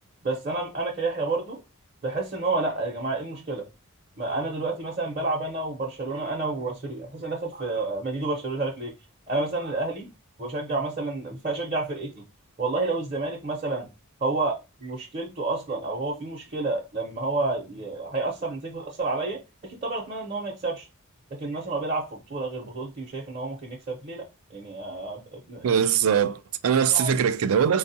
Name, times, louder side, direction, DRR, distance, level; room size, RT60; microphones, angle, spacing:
voice 1, 0.2-1.6 2.0-3.7 4.2-8.9 9.3-10.1 10.4-12.1 12.6-13.9 14.2-20.9 21.3-24.2 24.5-25.8 26.9-27.2, right 3 dB, 40° right, 0.7 m, -30 dB
voice 2, 25.6-27.8, right 8 dB, 70° right, 0.3 m, -22 dB
4.5 x 2.3 x 2.7 m
head